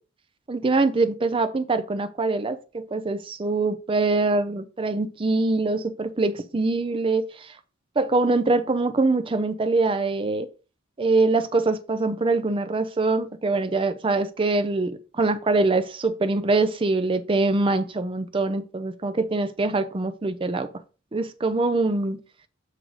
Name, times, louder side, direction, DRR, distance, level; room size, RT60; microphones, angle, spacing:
voice 1, 0.5-7.5 8.0-10.5 11.0-20.7 21.1-22.2, right 3 dB, 25° right, 0.5 m, -24 dB
7.5 x 3.8 x 4.7 m
head